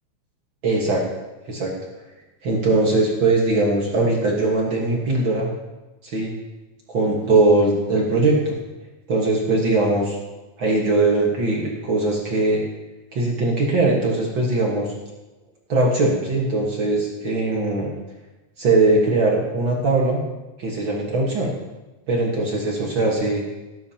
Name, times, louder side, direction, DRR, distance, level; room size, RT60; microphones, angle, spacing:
voice 1, 0.6-1.0 1.5-1.7 2.4-5.5 6.0-6.3 6.9-8.5 9.1-10.2 10.6-12.6 13.1-14.9 15.7-17.9 18.6-20.2 20.6-21.5 22.1-23.4, right 2 dB, 55° right, -2 dB, 1.3 m, -20 dB
17.5 x 11.0 x 2.9 m, 1.1 s
omnidirectional pair, 4.3 m